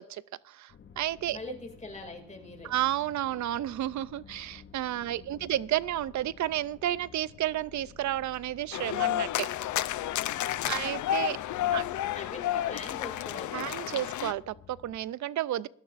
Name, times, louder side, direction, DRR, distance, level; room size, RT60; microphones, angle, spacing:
voice 1, 0.0-1.4 2.6-9.5 10.7-11.4 11.7-11.8 13.5-15.7, right 13 dB, 70° right, 19 dB, 0.5 m, -32 dB
sound 1, 0.7-15.0, left 6 dB, 40° left, 0.8 m, -53 dB
voice 2, 1.3-2.7 5.0-5.5 10.4-11.0 11.5-11.8 12.1-13.8, left 3 dB, 25° left, 3 dB, 2.4 m, -43 dB
sound 2, 8.7-14.3, left 13 dB, 75° left, 0.5 m, -31 dB
20.0 x 12.5 x 2.5 m, 0.64 s
wide cardioid pair, 140°, 30 cm